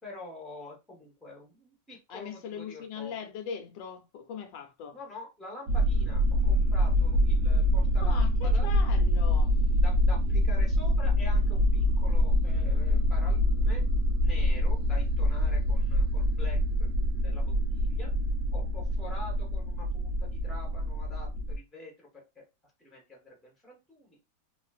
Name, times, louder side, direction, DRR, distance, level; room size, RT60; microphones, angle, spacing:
voice 1, 0.0-3.1 4.9-8.7 9.8-13.8 14.2-16.6 17.2-18.1 18.5-22.1 22.3-22.4 22.8-24.2, left 2 dB, ahead, 0.8 m, -46 dB
voice 2, 2.1-5.0 8.0-9.6, left 7 dB, 90° left, 1.4 m, -40 dB
sound 1, 5.7-21.6, equal, 75° right, 1.5 m, -25 dB
3.4 x 2.4 x 2.4 m
omnidirectional pair, 1.9 m